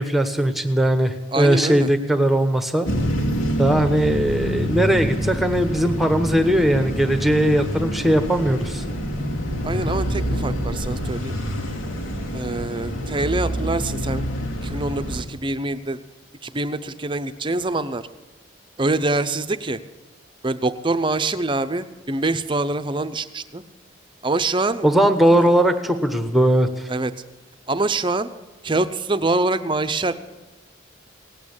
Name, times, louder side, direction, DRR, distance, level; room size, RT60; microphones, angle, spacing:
voice 1, 0.0-2.9 3.6-8.8 24.8-26.9, right 1 dB, ahead, 8 dB, 1.0 m, -19 dB
voice 2, 1.3-1.9 9.6-11.3 12.3-14.3 14.6-16.0 16.4-18.0 18.8-19.8 20.4-23.6 24.2-24.9 26.9-27.1 27.7-28.3 28.6-30.1, right 2 dB, 25° right, 11 dB, 0.7 m, -24 dB
sound 1, 2.8-15.2, equal, 85° left, 3.1 m, -26 dB
18.0 x 8.7 x 8.7 m, 1.1 s
head